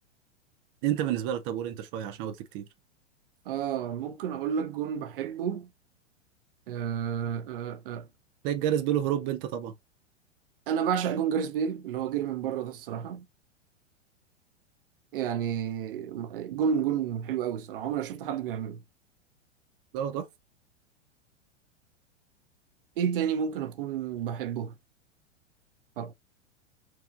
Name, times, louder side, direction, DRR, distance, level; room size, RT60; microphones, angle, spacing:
voice 1, 0.8-2.6 8.4-9.7 19.9-20.3, right 11 dB, 20° right, 0.3 m, -29 dB
voice 2, 3.5-5.7 6.7-8.1 10.7-13.2 15.1-18.8 23.0-24.7 26.0-26.1, right 8 dB, 45° right, 0.7 m, -30 dB
6.0 x 3.5 x 2.4 m
figure-of-eight pair, 100°, 37 cm